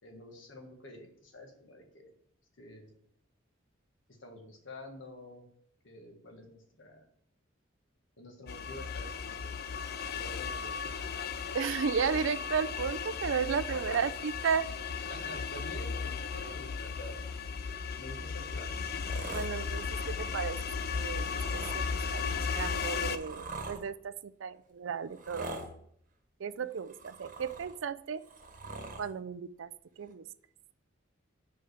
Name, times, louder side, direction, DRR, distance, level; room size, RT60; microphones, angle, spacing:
voice 1, 0.0-2.1 2.6-2.9 4.2-5.5 5.8-7.0 8.2-11.1 13.7-14.3 15.1-17.2 18.0-18.7, left 1 dB, 70° left, 3 dB, 1.6 m, -48 dB
sound 1, 8.5-23.2, left 5 dB, 50° left, 0.5 m, -36 dB
voice 2, 11.5-14.7 19.3-20.6 20.9-21.3 21.5-25.5 26.4-28.2 29.0-29.7 30.0-30.2, right 6 dB, 75° right, 15 dB, 0.4 m, -34 dB
sound 2, 18.8-19.9 21.1-21.8 22.6-23.8 25.1-25.7 26.7-27.8 28.2-29.1 30.1-30.2, right 2 dB, 45° right, 1.2 m, -44 dB
5.7 x 4.9 x 6.4 m, 0.67 s
head